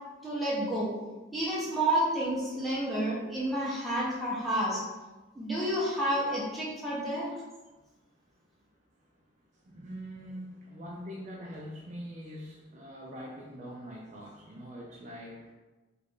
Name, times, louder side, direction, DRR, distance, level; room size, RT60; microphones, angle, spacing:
voice 1, 0.2-0.9 1.3-4.8 5.3-7.3, right 1 dB, ahead, -8 dB, 0.8 m, -30 dB
voice 2, 9.7-15.5, equal, 35° right, -2 dB, 0.4 m, -43 dB
3.1 x 2.4 x 3.5 m, 1.2 s
head